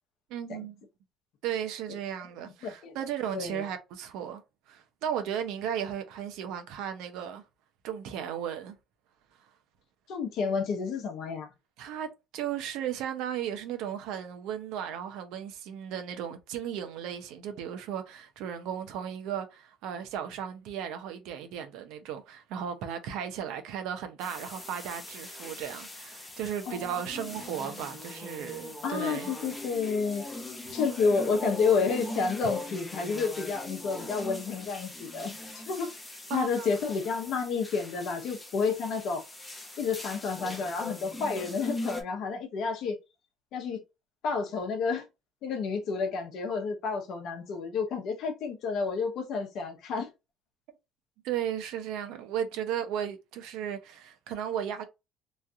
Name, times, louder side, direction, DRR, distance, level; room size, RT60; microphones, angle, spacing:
voice 1, 0.3-0.8 1.4-4.4 4.7-7.4 7.8-8.8 11.8-29.3 36.3-36.7 51.2-54.9, right 9 dB, 75° right, 0.7 m, -35 dB
voice 2, 2.6-2.9 3.3-3.6 10.1-11.5 26.7-27.6 28.8-30.3 30.7-35.9 36.3-39.2 39.8-43.0 43.5-43.8 44.2-45.0 45.4-50.1, left 5 dB, 55° left, 0.8 m, -30 dB
sound 1, 24.2-42.0, left 2 dB, 10° left, 0.7 m, -41 dB
3.1 x 2.4 x 2.7 m
cardioid pair, 160°, 0 cm